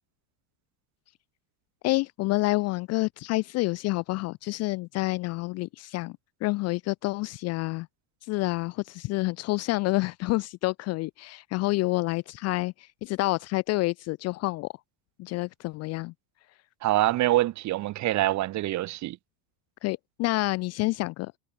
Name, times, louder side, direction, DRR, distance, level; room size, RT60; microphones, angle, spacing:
voice 1, 1.8-7.9 8.3-14.7 15.2-16.1 19.8-21.3, left 21 dB, 35° left, 0.4 m, -28 dB
voice 2, 16.8-19.2, right 16 dB, 35° right, 1.6 m, -25 dB
cardioid pair, 165°, 46 cm